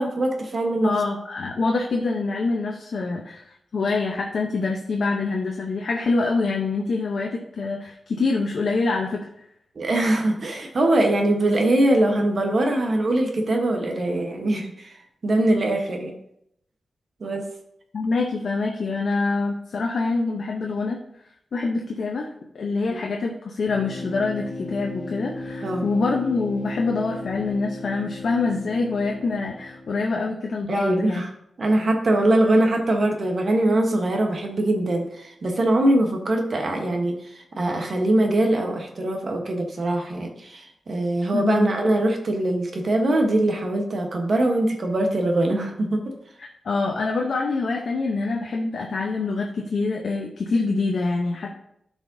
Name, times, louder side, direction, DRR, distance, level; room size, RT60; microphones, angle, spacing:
voice 1, 0.0-0.9 9.8-14.9 15.2-16.1 17.2-17.5 25.6-25.9 30.7-31.3 31.6-46.1, right 1 dB, 45° right, 3 dB, 1.0 m, -22 dB
voice 2, 0.8-3.4 3.7-9.2 17.9-21.0 21.5-31.2 41.3-41.8 46.4-51.5, left 3 dB, 60° left, 0 dB, 0.8 m, -25 dB
sound 1, 23.7-30.3, left 2 dB, 40° left, 1.1 m, -36 dB
13.0 x 4.9 x 2.6 m, 0.74 s
wide cardioid pair, 180°, 0 cm